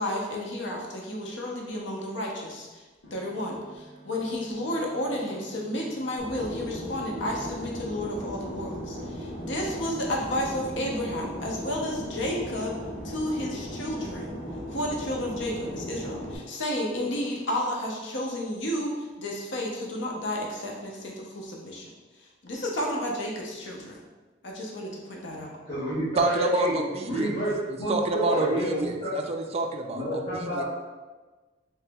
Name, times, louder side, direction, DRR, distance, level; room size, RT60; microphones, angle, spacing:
voice 1, 0.0-2.8 3.1-12.7 13.0-14.3 14.7-21.9 22.2-24.0 24.4-25.5, left 1 dB, 70° left, -1 dB, 0.7 m, -32 dB
sound 1, 3.0-15.9, right 1 dB, 90° left, 1.1 m, -51 dB
Fixed-wing aircraft airplane, 6.2-16.4, equal, 5° left, 1.2 m, -37 dB
voice 2, 25.3-29.1 29.9-30.6, right 1 dB, 30° left, -11 dB, 1.2 m, -29 dB
voice 3, 26.2-27.3 27.7-30.6, right 2 dB, 35° right, 3 dB, 0.3 m, -28 dB
3.2 x 2.9 x 3.4 m, 1.3 s
head